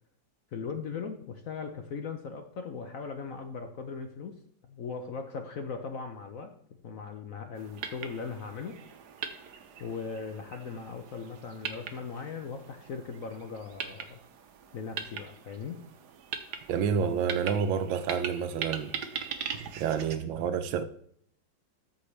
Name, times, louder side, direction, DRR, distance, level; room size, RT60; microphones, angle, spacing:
voice 1, 0.5-4.4 4.7-6.5 6.8-8.8 9.8-14.2 14.7-15.8, left 5 dB, 60° left, 0.9 m, -39 dB
sound 1, 7.6-20.2, right 7 dB, 65° right, 1.3 m, -41 dB
voice 2, 16.7-18.9 19.8-20.8, right 7 dB, 80° right, 1.4 m, -29 dB
13.0 x 5.2 x 3.3 m
omnidirectional pair, 2.1 m